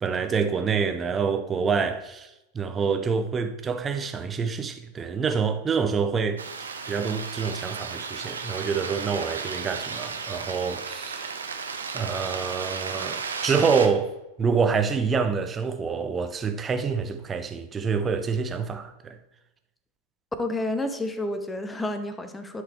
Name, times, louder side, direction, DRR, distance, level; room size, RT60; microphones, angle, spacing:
voice 1, 0.0-11.3 11.9-19.2, right 5 dB, 20° right, 0.7 m, -27 dB
sound 1, 6.4-13.9, right 5 dB, 70° right, 0.7 m, -34 dB
voice 2, 20.4-22.6, left 1 dB, 10° left, 0.8 m, -30 dB
12.0 x 4.8 x 3.1 m
figure-of-eight pair, 90°, 0 cm